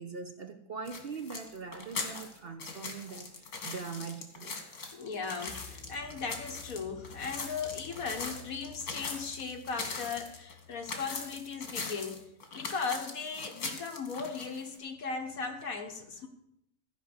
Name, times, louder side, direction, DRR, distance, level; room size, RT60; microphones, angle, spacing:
voice 1, 0.0-4.6, right 5 dB, 50° right, 7 dB, 0.9 m, -42 dB
sound 1, 0.8-14.8, left 4 dB, 85° left, 2.3 m, -41 dB
sound 2, 1.4-1.6 5.5-12.2, left 6 dB, 25° left, 5.3 m, -53 dB
voice 2, 4.9-12.3 12.5-16.3, left 5 dB, 70° left, 4 dB, 1.8 m, -37 dB
14.5 x 5.3 x 7.9 m, 0.81 s
omnidirectional pair, 1.6 m